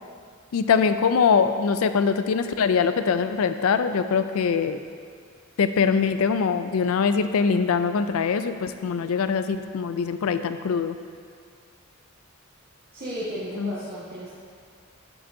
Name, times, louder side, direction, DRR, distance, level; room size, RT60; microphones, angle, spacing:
voice 1, 0.5-4.8 5.6-11.0 13.6-13.8, left 6 dB, 90° left, 10 dB, 0.4 m, -23 dB
voice 2, 12.9-14.3, equal, 45° right, -12 dB, 1.7 m, -34 dB
8.6 x 7.7 x 2.7 m, 2.2 s
head